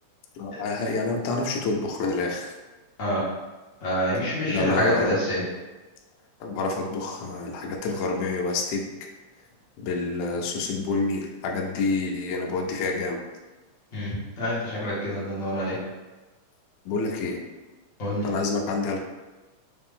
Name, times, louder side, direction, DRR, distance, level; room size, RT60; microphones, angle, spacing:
voice 1, 0.4-2.6 4.5-5.1 6.4-8.8 9.4-9.5 9.8-13.2 16.9-17.4 18.2-19.0, left 3 dB, 80° left, 2 dB, 2.0 m, -28 dB
voice 2, 3.8-5.4 13.9-14.1 14.4-15.7 18.0-18.2, left 1 dB, 55° left, -9 dB, 0.9 m, -26 dB
5.1 x 2.5 x 3.5 m, 1.2 s
omnidirectional pair, 3.5 m